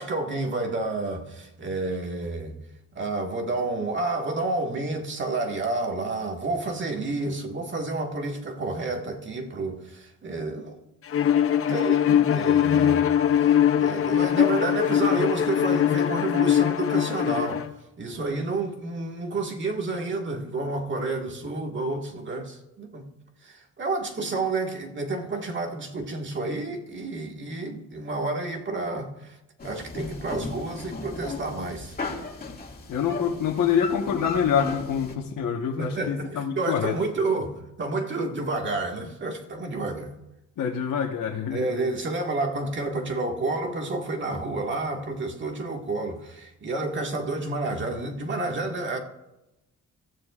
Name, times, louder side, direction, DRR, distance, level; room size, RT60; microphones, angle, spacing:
voice 1, 0.0-2.6 2.9-10.8 11.5-17.7 18.0-23.1 23.4-29.4 29.6-32.0 35.8-40.1 41.5-49.0, right 2 dB, 35° right, 1.8 m, -30 dB
Bowed string instrument, 11.1-17.7, left 9 dB, 45° left, 0.6 m, -21 dB
sound 1, 29.6-35.2, left 4 dB, 30° left, 2.2 m, -36 dB
voice 2, 32.9-36.9 40.6-41.7, left 7 dB, 75° left, 1.4 m, -26 dB
25.0 x 14.5 x 2.5 m
cardioid pair, 160°, 33 cm